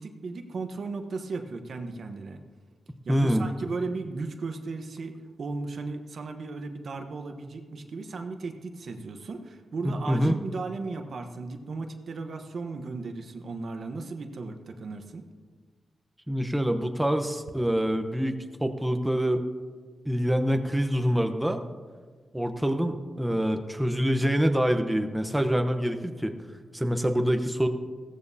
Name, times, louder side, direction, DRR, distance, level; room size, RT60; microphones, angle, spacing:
voice 1, 0.0-2.4 3.1-15.3, right 3 dB, 65° right, 5 dB, 1.1 m, -36 dB
voice 2, 3.1-3.5 9.8-10.3 16.3-18.3 18.6-19.4 20.0-21.6 22.3-26.3 26.7-27.7, equal, 5° right, 6 dB, 0.9 m, -25 dB
16.0 x 14.0 x 2.8 m, 1.5 s
cardioid pair, 80°, 0 cm